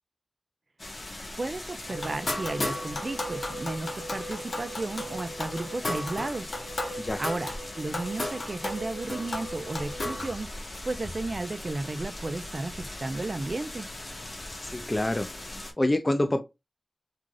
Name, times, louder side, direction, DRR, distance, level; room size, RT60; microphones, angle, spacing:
sound 1, 0.8-15.7, left 1 dB, 55° left, 0.7 m, -40 dB
voice 1, 1.4-6.5 7.2-10.5 10.8-13.9, right 2 dB, 55° right, 0.3 m, -33 dB
sound 2, 1.9-10.4, left 1 dB, 85° left, 0.9 m, -35 dB
voice 2, 14.7-15.3 15.8-16.4, left 1 dB, 30° left, 0.4 m, -26 dB
2.5 x 2.3 x 3.1 m
wide cardioid pair, 80°, 0 cm